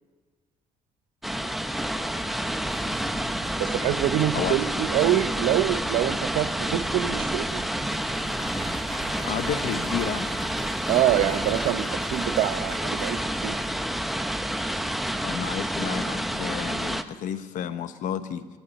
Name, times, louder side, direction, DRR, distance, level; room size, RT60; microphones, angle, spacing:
sound 1, 1.2-17.0, right 1 dB, ahead, 0.7 m, -29 dB
sound 2, 2.7-13.9, right 6 dB, 35° right, 1.6 m, -45 dB
voice 1, 3.6-7.6 10.9-13.6, right 12 dB, 80° right, 12 dB, 0.8 m, -25 dB
Clapping / Cheering / Applause, 7.5-13.7, equal, 15° left, 4.0 m, -44 dB
voice 2, 9.2-10.3 15.2-18.5, left 8 dB, 70° left, 11 dB, 1.0 m, -31 dB
18.0 x 14.0 x 4.2 m, 1.4 s
supercardioid pair, 80°, 14 cm